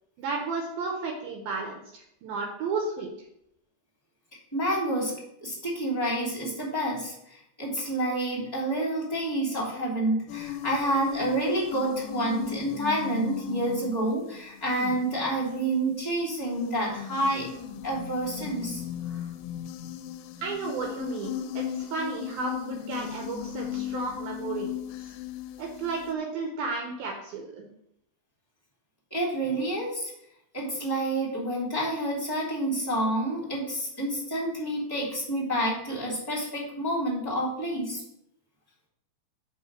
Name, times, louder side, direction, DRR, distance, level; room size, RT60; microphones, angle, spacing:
voice 1, 0.2-3.1 20.4-24.7 25.6-27.7, right 4 dB, 75° right, 0 dB, 2.5 m, -33 dB
voice 2, 4.5-17.5 17.8-18.8 19.1-19.2 29.1-30.1 30.5-38.0, right 1 dB, 10° left, -6 dB, 1.7 m, -29 dB
sound 1, 10.3-16.0 16.5-26.2, left 10 dB, 85° left, 2.6 m, -37 dB
5.6 x 5.4 x 6.0 m, 0.78 s
omnidirectional pair, 4.7 m